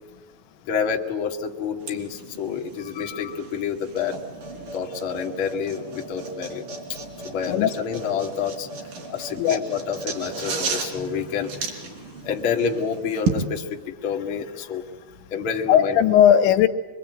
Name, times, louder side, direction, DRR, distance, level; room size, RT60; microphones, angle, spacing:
voice 1, 0.6-4.2 4.7-7.0 7.2-16.0, left 6 dB, 45° left, 2 dB, 1.8 m, -29 dB
sound 1, 1.8-13.4, right 4 dB, 50° right, 4.9 m, -34 dB
voice 2, 7.5-8.0 9.4-9.6 15.7-16.7, left 10 dB, 85° left, 9 dB, 3.5 m, -17 dB
24.5 x 24.0 x 9.3 m, 1.2 s
omnidirectional pair, 5.2 m